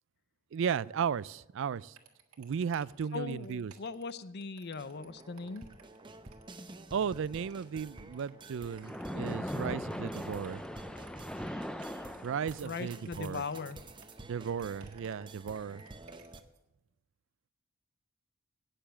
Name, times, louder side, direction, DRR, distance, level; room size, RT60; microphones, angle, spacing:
voice 1, 0.5-2.0 2.4-3.7 6.9-10.6 12.2-13.4 14.2-15.8, right 7 dB, 60° right, 21 dB, 0.3 m, -35 dB
sound 1, 1.9-16.6, right 6 dB, 85° right, 1.7 m, -59 dB
voice 2, 3.1-5.7 12.6-13.8, left 4 dB, 50° left, 15 dB, 0.6 m, -39 dB
sound 2, 4.8-16.4, right 2 dB, 20° right, 0.8 m, -51 dB
Splash splatter, 8.8-12.8, equal, 5° left, 0.4 m, -39 dB
17.5 x 6.9 x 6.2 m, 0.96 s
head